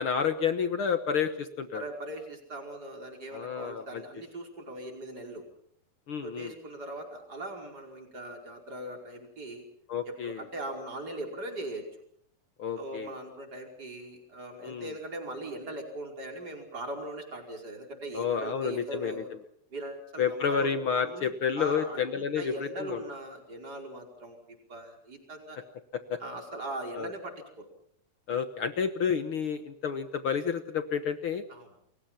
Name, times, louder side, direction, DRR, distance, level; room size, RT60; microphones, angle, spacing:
voice 1, 0.0-1.8 3.3-4.0 6.1-6.5 9.9-10.5 12.6-13.1 14.6-14.9 18.1-19.2 20.2-23.0 26.1-26.2 27.0-27.1 28.3-31.4, left 6 dB, 55° left, 9 dB, 1.6 m, -30 dB
voice 2, 1.7-5.4 6.2-9.6 10.1-11.9 12.8-19.3 19.7-24.4 24.7-25.6 26.2-27.7 31.5-31.7, right 1 dB, 30° right, 2 dB, 5.5 m, -40 dB
30.0 x 22.5 x 5.9 m, 0.66 s
omnidirectional pair, 3.6 m